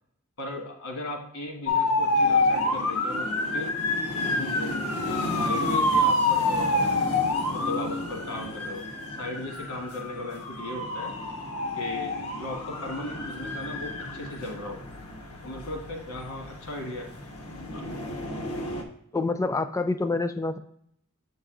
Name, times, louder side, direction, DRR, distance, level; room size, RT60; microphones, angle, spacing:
voice 1, 0.4-3.8 4.3-6.9 7.5-8.9 9.2-11.1 11.7-14.8 15.4-17.1 17.7-17.8, left 2 dB, 75° left, 1 dB, 1.6 m, -37 dB
sound 1, 1.7-18.8, left 2 dB, 90° left, 1.0 m, -28 dB
voice 2, 19.1-20.6, left 3 dB, 15° left, 10 dB, 0.3 m, -27 dB
7.5 x 4.0 x 3.8 m, 0.70 s
head